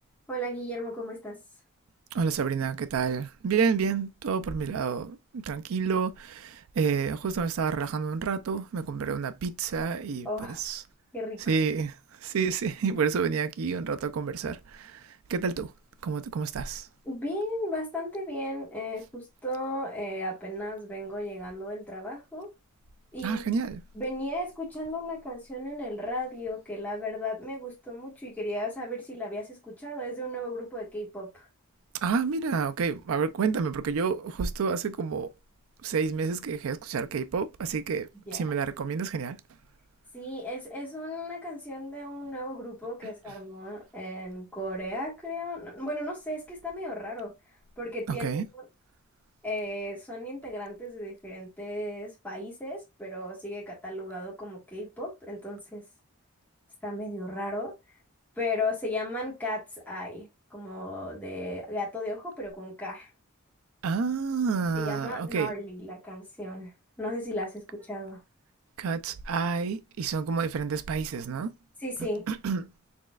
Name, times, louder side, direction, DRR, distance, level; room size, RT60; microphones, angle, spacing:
voice 1, 0.3-1.4 10.3-10.6 11.1-11.4 17.1-22.5 23.1-23.4 23.9-31.5 38.3-38.4 40.1-47.3 47.8-48.6 49.4-55.8 56.8-57.7 58.4-63.1 64.7-66.7 67.0-68.2 71.8-72.2, left 1 dB, 10° left, 1.8 m, -35 dB
voice 2, 2.1-10.8 11.5-15.7 16.0-16.9 23.2-23.8 32.0-35.3 35.8-39.4 43.0-43.3 48.1-48.5 63.8-65.5 68.8-71.5 72.3-72.7, right 5 dB, 70° right, 0.4 m, -29 dB
4.3 x 3.1 x 2.3 m
head